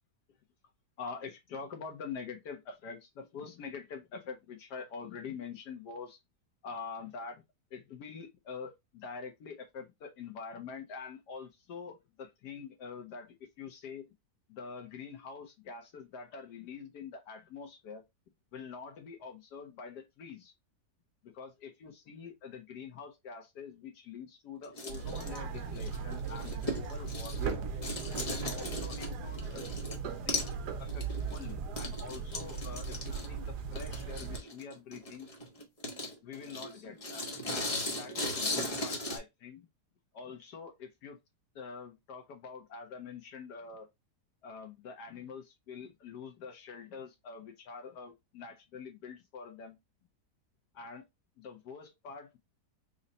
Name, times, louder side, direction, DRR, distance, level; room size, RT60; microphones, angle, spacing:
voice 1, 1.0-6.2 6.6-7.4 7.7-14.1 14.5-18.0 18.5-20.5 21.2-27.6 28.3-29.8 30.1-35.3 36.2-37.2 37.8-39.7 40.1-41.2 41.5-43.9 44.4-49.8 50.7-51.0 51.4-52.4, left 5 dB, 75° left, 1.3 m, -45 dB
sound 1, 24.6-27.5 27.8-30.0 30.3-30.6 30.9-39.2, left 1 dB, 35° left, 0.6 m, -38 dB
sound 2, 24.9-34.4, right 5 dB, 75° right, 1.2 m, -38 dB
3.9 x 2.1 x 3.9 m
omnidirectional pair, 1.8 m